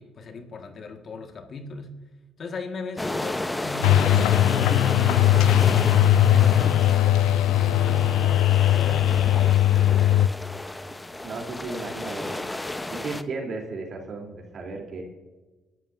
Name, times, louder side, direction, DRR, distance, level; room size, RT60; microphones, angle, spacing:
voice 1, 0.0-2.0 2.4-8.5 8.7-9.7, left 2 dB, 55° left, 5 dB, 1.7 m, -38 dB
sound 1, 3.0-13.2, left 2 dB, 15° left, 0.9 m, -32 dB
sound 2, 3.8-10.3, left 12 dB, 80° left, 0.4 m, -19 dB
voice 2, 11.2-12.4 12.9-15.0, right 3 dB, 60° right, 1 dB, 3.3 m, -35 dB
27.0 x 11.0 x 2.7 m, 1.2 s
hypercardioid pair, 55°, 0 cm